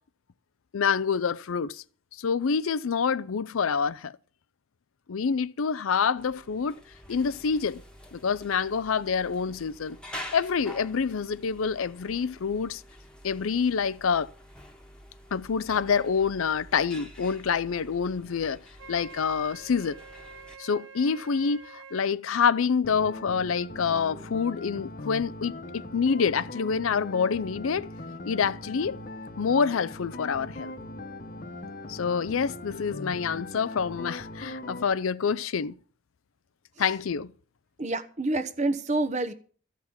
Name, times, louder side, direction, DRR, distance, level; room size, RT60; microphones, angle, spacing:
voice 1, 0.7-1.8 2.1-4.1 5.1-6.7 7.1-7.8 8.1-10.0 10.3-12.8 13.2-14.3 15.3-18.6 18.9-20.0 20.6-27.9 28.2-29.0 29.4-30.8 31.9-35.7 36.8-37.3, left 6 dB, 80° left, 0.5 m, -27 dB
sound 1, 6.2-20.6, left 1 dB, 5° left, 1.4 m, -47 dB
Wind instrument woodwind instrument, 18.8-22.1, right 4 dB, 60° right, 1.3 m, -47 dB
sound 2, 22.8-34.8, left 2 dB, 40° left, 1.0 m, -40 dB
voice 2, 37.8-39.3, right 2 dB, 35° right, 1.0 m, -27 dB
14.5 x 5.9 x 8.6 m
head